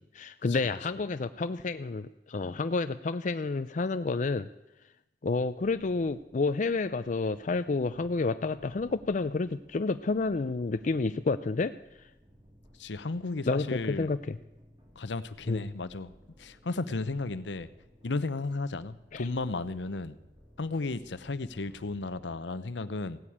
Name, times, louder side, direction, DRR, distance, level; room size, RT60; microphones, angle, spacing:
voice 1, 0.0-4.5 5.2-11.7 13.5-14.4 15.5-15.6 19.1-19.2, left 3 dB, 45° left, 10 dB, 0.5 m, -30 dB
sound 1, 5.4-22.4, equal, 25° right, 2.9 m, -59 dB
voice 2, 12.8-14.1 15.0-16.1 16.4-17.7 18.0-20.2 20.6-23.2, left 3 dB, 80° left, 14 dB, 0.8 m, -34 dB
16.0 x 9.3 x 8.7 m, 0.95 s
head